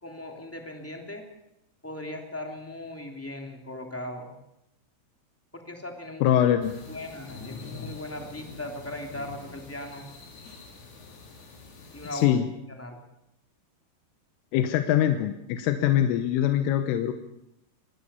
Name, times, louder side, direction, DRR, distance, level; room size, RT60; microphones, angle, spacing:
voice 1, 0.0-1.2 1.8-4.3 5.5-6.3 6.9-10.1 11.9-12.4 12.7-13.0, left 1 dB, 5° left, 3 dB, 1.5 m, -38 dB
voice 2, 6.2-6.7 12.1-12.5 14.5-17.1, left 11 dB, 80° left, 8 dB, 3.5 m, -23 dB
sound 1, 6.6-12.3, left 4 dB, 55° left, 5.4 m, -45 dB
25.5 x 19.0 x 6.9 m, 0.84 s
omnidirectional pair, 5.7 m